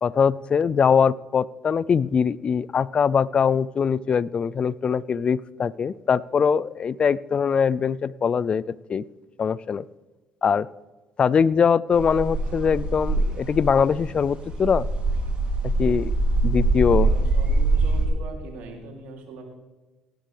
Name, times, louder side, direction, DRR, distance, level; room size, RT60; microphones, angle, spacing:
voice 1, 0.0-9.0 9.4-9.9 10.4-10.7 11.2-14.9 15.6-16.1 16.4-17.1, left 6 dB, 40° left, 21 dB, 0.4 m, -22 dB
sound 1, 11.9-18.1, right 2 dB, 50° right, 3.0 m, -23 dB
voice 2, 16.8-19.4, right 3 dB, 70° right, 2 dB, 3.0 m, -41 dB
18.0 x 11.5 x 3.4 m, 1.2 s
hypercardioid pair, 60°, 3 cm